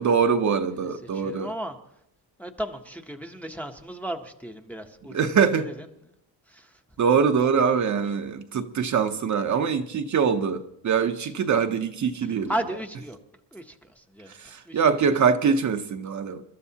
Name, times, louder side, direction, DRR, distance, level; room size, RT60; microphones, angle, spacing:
voice 1, 0.0-1.5 5.1-5.7 7.0-12.5 14.4-16.4, right 6 dB, 40° right, 0.7 m, -23 dB
voice 2, 1.0-1.8 2.4-5.9 6.5-6.8 7.4-8.0 12.2-13.2 13.5-14.3 14.7-14.8, right 1 dB, 5° left, 0.7 m, -35 dB
28.0 x 13.0 x 2.8 m
cardioid pair, 165°, 46 cm